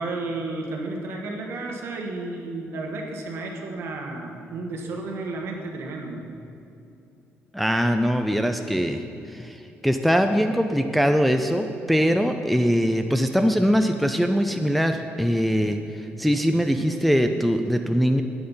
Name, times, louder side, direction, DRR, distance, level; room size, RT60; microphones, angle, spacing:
voice 1, 0.0-6.3, right 2 dB, 60° right, 1 dB, 1.5 m, -32 dB
voice 2, 7.5-9.0 9.3-18.2, equal, ahead, 6 dB, 0.3 m, -22 dB
11.5 x 8.8 x 5.5 m, 2.7 s
cardioid pair, 175°, 5 cm